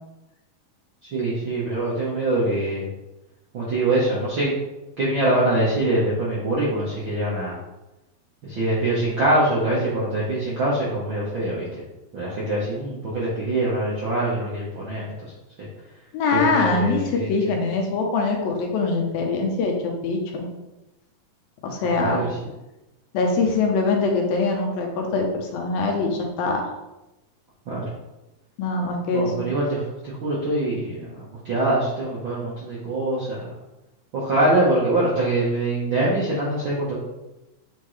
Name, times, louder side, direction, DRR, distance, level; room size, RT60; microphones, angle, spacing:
voice 1, 1.1-2.9 3.5-4.5 5.0-7.5 8.4-11.7 12.1-15.1 16.3-17.3 22.0-22.4 27.7-27.8 29.1-33.4 34.1-37.0, right 1 dB, 65° right, -7 dB, 1.2 m, -24 dB
voice 2, 16.1-20.5 21.6-22.2 23.1-26.6 28.6-29.3, left 3 dB, 80° left, 2 dB, 2.7 m, -23 dB
8.8 x 3.7 x 3.2 m, 0.99 s
omnidirectional pair, 4.1 m